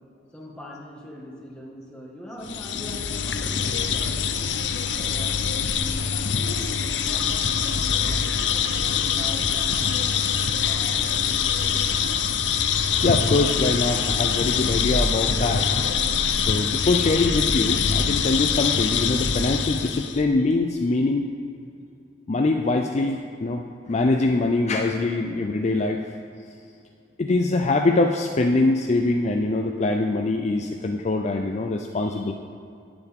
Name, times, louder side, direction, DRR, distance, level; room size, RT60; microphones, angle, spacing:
voice 1, 0.3-4.6 5.0-8.3 8.7-11.8, equal, 5° left, -4 dB, 1.7 m, -42 dB
sound 1, 2.4-20.2, left 6 dB, 80° left, 0.6 m, -24 dB
voice 2, 13.0-15.6 16.3-21.2 22.3-26.0 27.2-32.3, left 2 dB, 40° left, 3 dB, 0.4 m, -23 dB
17.5 x 6.9 x 3.6 m, 2.5 s
head